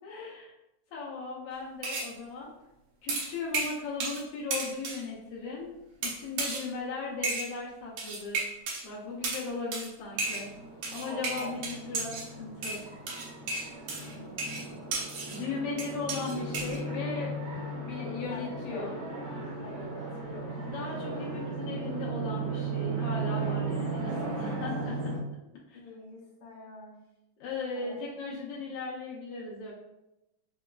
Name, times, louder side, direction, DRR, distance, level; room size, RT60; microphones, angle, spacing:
voice 1, 0.0-0.5 0.9-2.5 3.0-8.5 8.8-10.5 10.9-12.1 12.4-12.8 15.3-17.3 17.8-18.9 20.6-25.1 25.7-25.8 27.4-29.7, left 4 dB, 85° left, -5 dB, 1.3 m, -37 dB
sound 1, 1.8-2.1 3.1-4.2 4.5-5.0 6.0-6.7 7.2-7.5 8.0-8.8 9.2-9.4 9.7-9.9 10.2-10.5 10.8-12.3 12.6-15.4 15.8-16.8, right 3 dB, 75° right, 1.6 m, -33 dB
sound 2, 10.1-25.2, right 3 dB, 50° right, 1.6 m, -36 dB
voice 2, 13.9-15.0 18.2-19.1 19.6-20.7 25.7-27.0 27.7-28.0 28.5-28.6, left 2 dB, 70° left, -3 dB, 1.4 m, -47 dB
4.6 x 2.2 x 2.3 m, 0.91 s
omnidirectional pair, 3.3 m